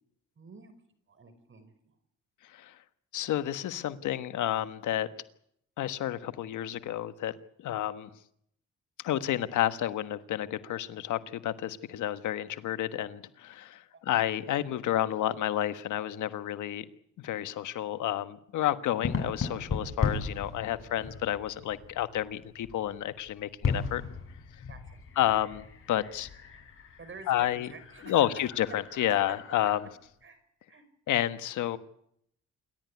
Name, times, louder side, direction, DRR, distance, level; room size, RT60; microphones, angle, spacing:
voice 1, 0.3-0.7 1.1-2.0 14.1-14.2 24.7-25.0 27.0-28.3 29.1-29.2 30.2-30.4 30.7-30.8, right 4 dB, 40° right, 11 dB, 5.1 m, -49 dB
voice 2, 3.1-5.1 5.8-7.3 7.6-8.1 9.0-16.9 17.2-24.0 25.2-26.3 27.3-27.7 28.1-29.8 31.1-31.8, left 12 dB, 80° left, 11 dB, 1.4 m, -30 dB
sound 1, 19.0-30.1, left 5 dB, 45° left, 7.3 m, -37 dB
27.5 x 13.0 x 9.7 m, 0.72 s
cardioid pair, 90°, 30 cm